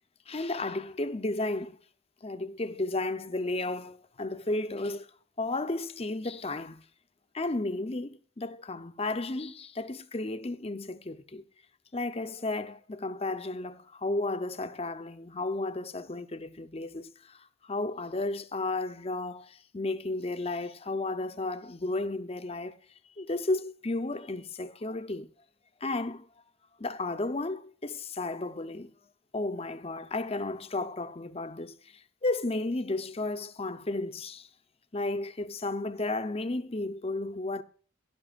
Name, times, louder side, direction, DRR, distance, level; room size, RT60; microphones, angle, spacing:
voice 1, 0.3-1.8 2.2-5.1 5.4-6.8 7.3-11.4 11.9-22.8 23.2-25.3 25.8-26.3 26.8-28.9 29.3-34.5 34.9-37.6, left 2 dB, 30° left, 0.7 m, -33 dB
17.5 x 12.0 x 2.4 m
head